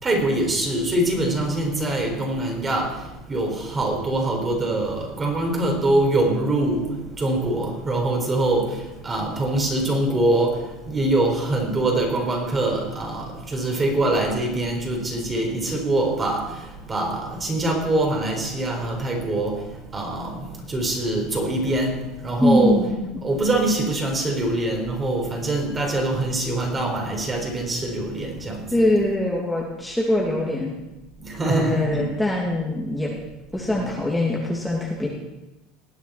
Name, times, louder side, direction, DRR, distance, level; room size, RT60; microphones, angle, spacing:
voice 1, 0.0-3.0 3.3-6.9 7.2-8.8 9.0-16.5 16.9-19.6 19.9-22.8 23.2-28.7 31.2-32.1 33.7-33.9, right 2 dB, 25° right, 1 dB, 4.1 m, -24 dB
voice 2, 22.4-22.9 23.1-23.2 28.7-30.7 31.4-33.1 33.5-35.1, left 1 dB, 5° left, -3 dB, 2.3 m, -22 dB
20.0 x 8.1 x 4.4 m, 0.95 s
supercardioid pair, 105°, 0 cm